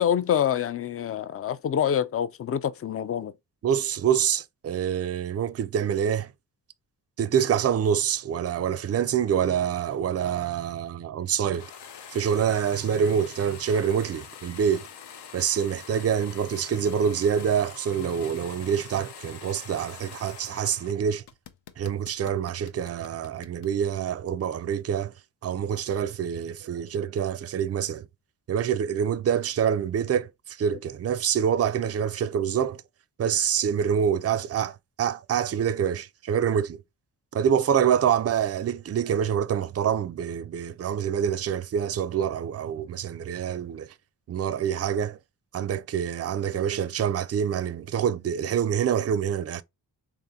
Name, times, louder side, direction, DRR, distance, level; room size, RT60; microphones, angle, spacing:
voice 1, 0.0-3.3, left 9 dB, 35° left, 0.4 m, -26 dB
voice 2, 3.6-6.3 7.2-11.7 12.1-14.9 15.3-21.2 21.8-25.1 25.4-28.1 28.5-32.8 33.2-36.8 37.3-43.9 44.3-45.2 45.5-49.6, right 8 dB, 35° right, 0.4 m, -26 dB
sound 1, 11.5-20.9 21.2-23.7, left 7 dB, 70° left, 0.7 m, -45 dB
3.5 x 2.7 x 3.6 m
supercardioid pair, 45°, 42 cm